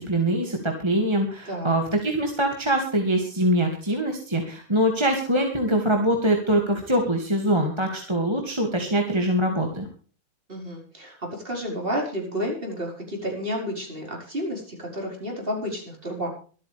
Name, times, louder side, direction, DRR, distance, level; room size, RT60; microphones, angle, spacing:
voice 1, 0.0-9.9, right 1 dB, 20° right, 2 dB, 2.3 m, -23 dB
voice 2, 10.5-16.3, equal, 40° right, 0 dB, 5.5 m, -31 dB
25.0 x 8.8 x 3.4 m, 0.41 s
omnidirectional pair, 1.5 m